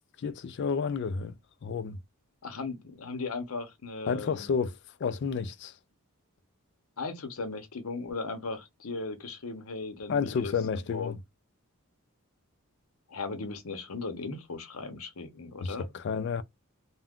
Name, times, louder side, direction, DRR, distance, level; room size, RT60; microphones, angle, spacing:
voice 1, 0.2-1.4 1.6-2.0 4.1-5.7 10.1-11.2 15.6-16.4, left 5 dB, 55° left, 0.3 m, -31 dB
voice 2, 2.4-4.5 7.0-10.5 10.9-11.2 13.1-15.9, left 3 dB, 75° left, 0.8 m, -37 dB
2.3 x 2.2 x 3.5 m
head